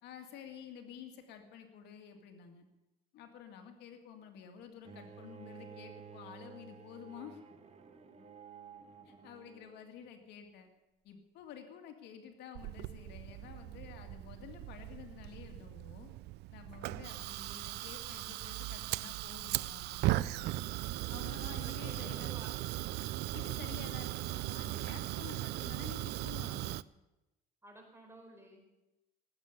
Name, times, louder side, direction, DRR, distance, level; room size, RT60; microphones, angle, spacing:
voice 1, 0.0-2.7 3.1-7.4 9.1-10.7 11.0-16.1 16.5-20.7 21.1-22.3 23.3-26.8, left 8 dB, 80° left, 5 dB, 2.3 m, -51 dB
Bowed string instrument, 4.8-9.9, right 6 dB, 40° right, 1.6 m, -53 dB
Fire, 12.5-26.8, right 17 dB, 80° right, 0.4 m, -38 dB
voice 2, 21.6-22.8 27.6-28.7, right 1 dB, 15° right, 2 dB, 4.6 m, -53 dB
18.5 x 8.6 x 8.3 m, 1.0 s
cardioid pair, 110°, 17 cm